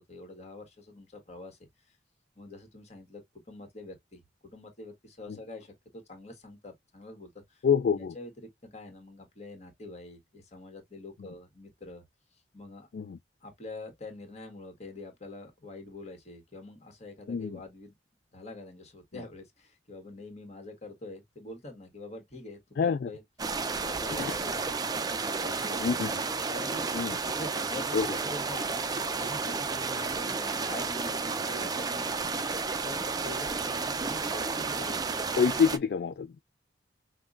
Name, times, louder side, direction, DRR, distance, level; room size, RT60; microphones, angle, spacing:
voice 1, 0.0-1.6 1.9-2.0 2.3-12.0 12.3-12.9 13.4-17.9 18.3-23.2 23.7-24.8 25.2-35.2, left 2 dB, 35° left, 1.5 m, -45 dB
voice 2, 7.6-8.1 12.9-13.2 17.3-17.5 22.8-23.1 24.2-24.3 25.8-26.1 26.9-27.1 27.9-28.1 35.4-36.4, left 6 dB, 55° left, 0.3 m, -26 dB
sound 1, 23.4-35.8, right 4 dB, 20° right, 0.4 m, -32 dB
5.7 x 2.3 x 2.4 m
head